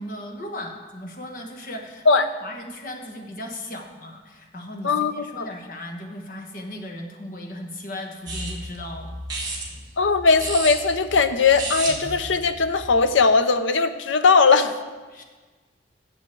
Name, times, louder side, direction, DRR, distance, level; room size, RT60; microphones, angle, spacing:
voice 1, 0.0-9.1 9.4-9.5 15.1-15.2, left 1 dB, 50° left, 3 dB, 1.3 m, -37 dB
voice 2, 4.8-5.5 10.0-14.7, left 4 dB, 80° left, 11 dB, 0.7 m, -19 dB
sound 1, 8.3-13.1, right 2 dB, 20° right, 2.3 m, -33 dB
7.6 x 7.5 x 7.6 m, 1.3 s
head